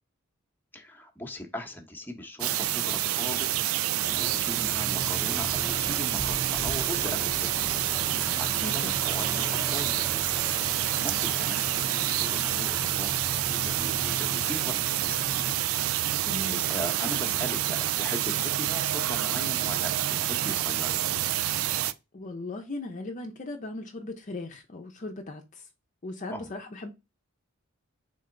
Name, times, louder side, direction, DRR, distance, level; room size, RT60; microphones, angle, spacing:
voice 1, 0.7-3.6 4.2-7.7 8.1-10.2 10.6-13.1 13.5-15.4 16.5-21.0 26.3-26.5, left 1 dB, 10° left, 0.8 m, -39 dB
sound 1, 2.4-21.9, right 13 dB, 90° right, 0.4 m, -28 dB
Aircraft, 4.0-15.6, right 1 dB, 15° right, 0.8 m, -38 dB
voice 2, 8.6-8.9 16.2-16.6 22.1-25.7 26.0-26.9, left 2 dB, 40° left, 0.6 m, -38 dB
3.8 x 3.3 x 3.7 m
head